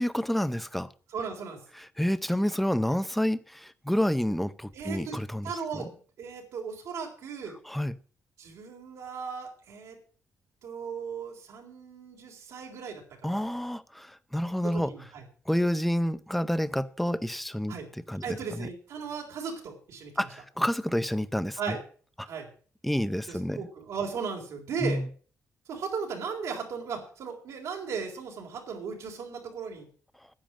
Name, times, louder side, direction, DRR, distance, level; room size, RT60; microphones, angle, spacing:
voice 1, 0.0-0.9 1.8-5.8 7.7-8.0 13.2-14.9 15.5-17.8 18.1-18.7 20.2-21.6 22.8-23.6 24.8-25.0, equal, ahead, 14 dB, 0.6 m, -29 dB
voice 2, 1.1-1.6 4.7-5.1 5.4-7.6 8.4-10.0 10.6-13.4 14.6-15.2 17.7-17.9 18.2-20.3 21.6-21.8 22.2-22.5 23.3-25.0 25.7-29.9, right 6 dB, 75° right, -1 dB, 3.7 m, -37 dB
10.5 x 9.1 x 7.4 m, 0.43 s
cardioid pair, 135°, 6 cm